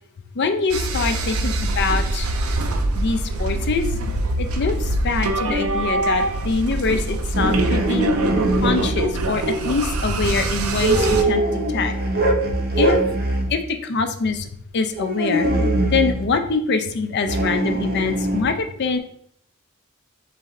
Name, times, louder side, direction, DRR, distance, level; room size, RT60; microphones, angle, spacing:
voice 1, 0.4-2.3 2.9-3.9 4.4-8.1 8.6-11.9 12.8-13.0 13.5-14.5 14.7-15.5 15.9-19.0, left 4 dB, 55° left, 7 dB, 0.5 m, -24 dB
sound 1, 0.7-11.2, right 2 dB, 85° right, 0.5 m, -24 dB
sound 2, 7.3-9.0 10.8-13.5 14.9-16.2 17.2-18.4, right 1 dB, 45° right, 0.8 m, -21 dB
4.2 x 3.2 x 3.6 m, 0.69 s
head